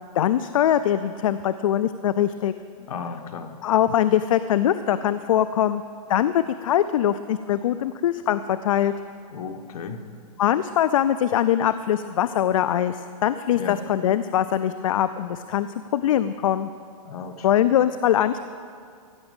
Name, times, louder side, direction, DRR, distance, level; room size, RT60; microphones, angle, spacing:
voice 1, 0.1-2.5 3.6-5.8 6.1-8.9 10.4-15.7 15.9-16.7 17.4-18.4, left 10 dB, 65° left, 12 dB, 0.4 m, -22 dB
voice 2, 2.9-3.5 9.3-10.0 13.5-13.8 17.0-17.5, left 6 dB, 80° left, 6 dB, 1.3 m, -34 dB
16.0 x 6.3 x 8.8 m, 2.2 s
hypercardioid pair, 175°, 19 cm